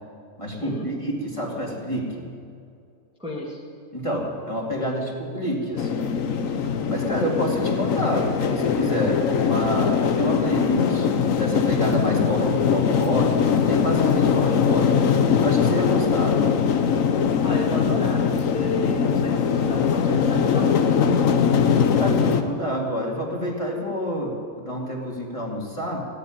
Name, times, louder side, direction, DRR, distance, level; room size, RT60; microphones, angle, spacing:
voice 1, 0.4-2.2 3.9-6.1 6.5-15.0 15.4-16.4 21.7-26.1, equal, 20° left, -3 dB, 2.6 m, -28 dB
voice 2, 3.2-3.6 17.4-21.1, left 1 dB, 5° right, -5 dB, 1.9 m, -32 dB
sound 1, 5.8-22.4, left 7 dB, 70° left, 1.2 m, -21 dB
16.5 x 8.5 x 9.9 m, 2.4 s
omnidirectional pair, 1.5 m